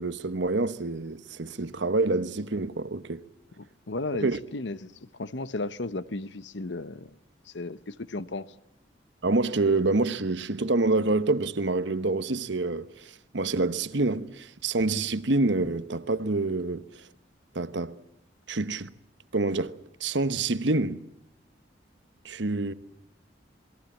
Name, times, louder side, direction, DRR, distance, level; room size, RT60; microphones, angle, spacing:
voice 1, 0.0-3.2 4.2-4.4 9.2-16.9 17.5-18.0 18.5-18.9 19.3-21.0 22.2-22.7, right 3 dB, 75° right, 1.1 m, -27 dB
voice 2, 3.6-7.1 7.5-8.5, left 2 dB, 75° left, 0.9 m, -35 dB
27.5 x 21.0 x 7.3 m
head